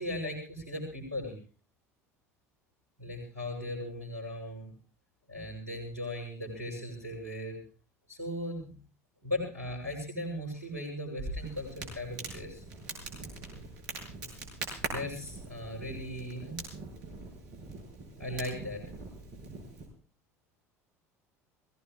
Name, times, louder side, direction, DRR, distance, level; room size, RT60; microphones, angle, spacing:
voice 1, 0.0-1.4 3.0-4.7 5.3-7.6 8.1-8.7 9.2-12.6 14.9-16.7 17.1-17.3 18.2-18.8, left 1 dB, 90° right, -8 dB, 7.1 m, -38 dB
Crackle, 11.2-19.9, right 3 dB, 60° right, 7.2 m, -42 dB
22.5 x 17.5 x 3.4 m, 0.37 s
hypercardioid pair, 70°, 8 cm